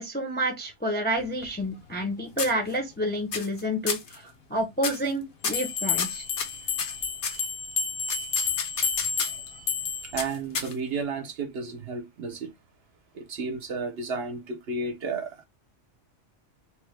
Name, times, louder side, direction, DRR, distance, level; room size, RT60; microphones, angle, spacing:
voice 1, 0.0-6.2, equal, 10° left, 0.5 m, -29 dB
sound 1, 1.2-2.1 2.4-3.0 3.3-3.6 3.9-4.2 4.8-5.1 5.4-7.4 8.1-9.5 10.2-11.0, left 5 dB, 60° left, 0.8 m, -32 dB
sound 2, 5.5-10.2, left 6 dB, 80° left, 1.1 m, -30 dB
voice 2, 10.0-12.5 13.1-15.5, right 4 dB, 65° right, 0.8 m, -32 dB
3.2 x 2.1 x 3.1 m
omnidirectional pair, 1.2 m